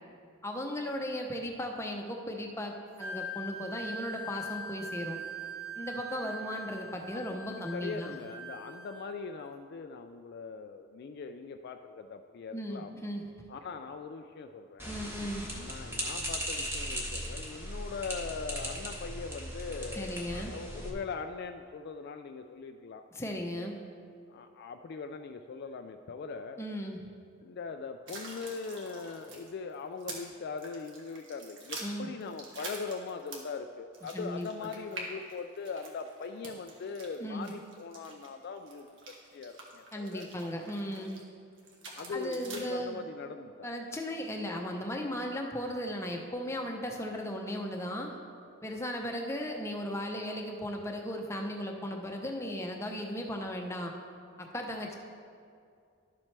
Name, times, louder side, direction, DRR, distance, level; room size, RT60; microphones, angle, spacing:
voice 1, 0.4-5.2 5.8-8.1 12.5-13.5 14.8-15.5 20.0-20.5 23.1-23.8 26.6-27.0 31.8-32.1 34.1-34.5 37.2-37.5 39.9-41.2 42.1-43.0 43.6-48.1 48.6-54.0 54.4-54.9, equal, 15° left, 1 dB, 0.7 m, -36 dB
Wind instrument woodwind instrument, 3.0-9.1, right 1 dB, 80° right, 0.9 m, -42 dB
voice 2, 7.5-13.0 13.5-14.9 15.5-23.0 24.3-26.6 27.4-40.3 42.0-43.7, left 5 dB, 50° left, 6 dB, 0.3 m, -41 dB
sound 1, 14.8-20.9, equal, 10° right, 1.2 m, -38 dB
sound 2, 28.1-30.3 30.6-33.6 33.9-41.2 41.6-42.6, right 2 dB, 60° right, 1.3 m, -46 dB
11.5 x 7.3 x 3.3 m, 2.3 s
head